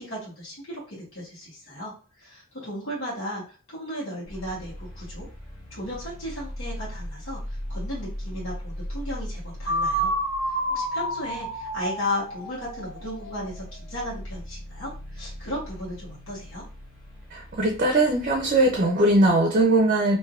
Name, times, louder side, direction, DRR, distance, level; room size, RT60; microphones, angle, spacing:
voice 1, 0.0-1.9 2.2-5.3 5.7-10.1 10.7-16.6, left 1 dB, 80° left, -6 dB, 1.3 m, -35 dB
sound 1, 4.2-18.8, equal, 40° left, 1.2 m, -39 dB
sound 2, 9.7-13.5, right 1 dB, 65° left, 1.3 m, -29 dB
voice 2, 17.3-20.2, right 2 dB, 40° right, 2 dB, 0.5 m, -20 dB
3.3 x 2.6 x 2.4 m, 0.37 s
head